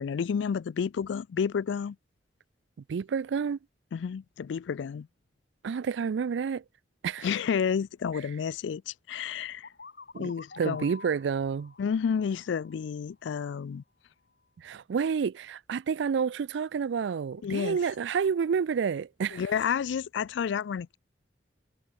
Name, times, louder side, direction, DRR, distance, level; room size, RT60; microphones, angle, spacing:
voice 1, 0.0-2.0 3.9-5.1 7.2-9.7 10.2-10.9 11.8-13.8 17.4-17.8 19.3-21.0, left 7 dB, 80° left, 0.3 m, -30 dB
voice 2, 2.9-3.6 5.6-6.6 7.0-7.3 10.1-11.7 14.6-19.4, right 6 dB, 75° right, 0.4 m, -29 dB
sound 1, 9.6-13.4, left 4 dB, 60° left, 6.9 m, -50 dB
head